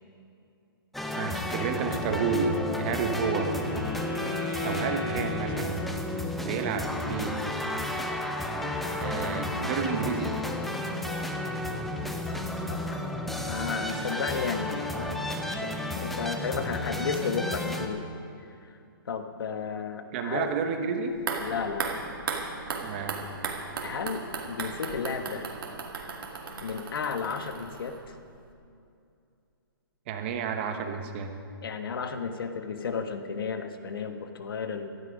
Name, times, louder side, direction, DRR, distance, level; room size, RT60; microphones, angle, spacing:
sound 1, 0.9-17.9, left 1 dB, ahead, 0.5 m, -32 dB
voice 1, 1.2-3.5 4.6-5.8 6.4-7.4 9.0-10.3 20.1-21.2 22.8-23.2 30.1-31.3, right 5 dB, 30° right, 5 dB, 1.1 m, -30 dB
Wind instrument woodwind instrument, 2.9-6.5, left 3 dB, 30° left, 3.8 m, -37 dB
voice 2, 12.7-13.0 13.5-18.1 19.1-20.5 21.4-22.0 23.8-25.5 26.6-28.1 31.6-34.9, left 5 dB, 70° left, 7 dB, 1.4 m, -33 dB
sound 2, 21.1-28.2 28.5-28.6, right 5 dB, 65° right, 2.3 m, -36 dB
17.5 x 13.0 x 5.2 m, 2.5 s
hypercardioid pair, 165°, 12 cm